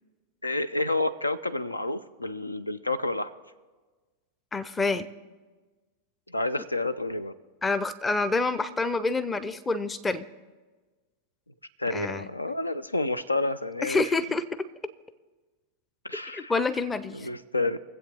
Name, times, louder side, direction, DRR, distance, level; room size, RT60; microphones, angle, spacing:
voice 1, 0.4-3.3 6.3-7.3 11.8-14.0 16.0-16.5 17.1-17.8, left 2 dB, 80° left, 15 dB, 0.5 m, -29 dB
voice 2, 4.5-5.1 7.6-10.3 11.9-12.3 13.8-14.4 16.3-17.3, left 3 dB, 15° left, 14 dB, 0.6 m, -27 dB
23.5 x 7.9 x 3.5 m, 1.3 s
figure-of-eight pair, 90°, 0 cm